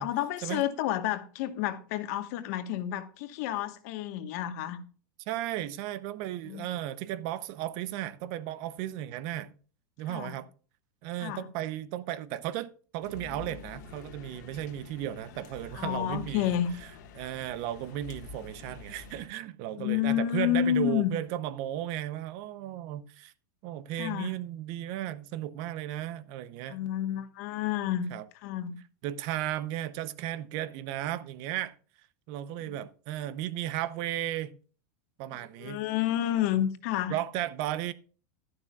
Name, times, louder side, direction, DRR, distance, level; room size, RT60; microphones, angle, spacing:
voice 1, 0.0-4.8 6.4-6.7 10.1-10.4 11.2-11.4 15.8-16.7 19.8-21.1 24.0-24.3 26.7-28.1 28.4-28.7 32.6-32.8 35.6-37.1, left 11 dB, 55° left, 1.2 m, -30 dB
voice 2, 5.3-9.6 10.0-10.5 11.0-16.6 17.1-23.3 23.6-26.9 28.1-28.3 29.0-31.7 32.3-34.6 35.2-35.9 37.1-37.9, right 13 dB, 50° right, 0.7 m, -35 dB
sound 1, 13.0-19.3, left 4 dB, 70° left, 1.6 m, -47 dB
11.5 x 11.0 x 2.3 m
supercardioid pair, 145°, 10 cm